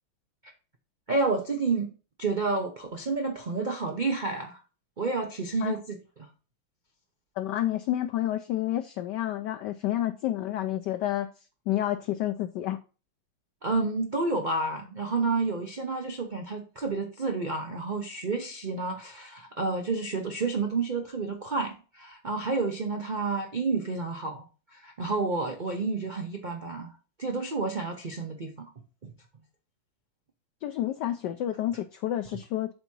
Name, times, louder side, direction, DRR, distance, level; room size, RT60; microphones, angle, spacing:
voice 1, 1.1-1.9 2.2-4.6 5.0-6.3 13.6-26.9 27.2-28.7 29.0-29.1, right 3 dB, 80° right, 0.4 m, -30 dB
voice 2, 7.4-11.3 11.7-12.8 30.6-32.7, left 13 dB, 75° left, 1.0 m, -29 dB
7.9 x 2.8 x 6.1 m
omnidirectional pair, 2.2 m